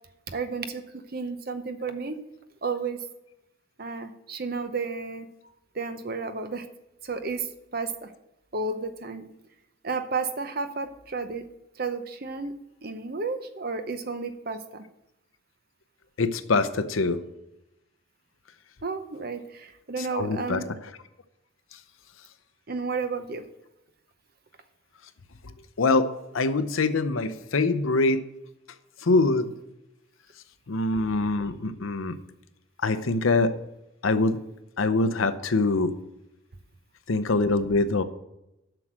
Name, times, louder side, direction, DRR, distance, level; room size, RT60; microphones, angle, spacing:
voice 1, 0.3-2.2 2.6-3.0 3.8-5.3 5.7-6.7 7.0-8.1 8.5-9.3 9.8-11.4 11.8-12.5 12.8-14.8 18.8-20.7 22.7-23.4, right 4 dB, 45° right, 9 dB, 0.8 m, -32 dB
voice 2, 16.2-17.2 20.0-20.6 25.8-28.2 29.0-29.5 30.7-32.1 32.8-33.5 34.0-34.4 34.8-35.9 37.1-38.0, left 3 dB, 80° left, 11 dB, 0.7 m, -24 dB
7.7 x 6.2 x 7.5 m, 0.90 s
head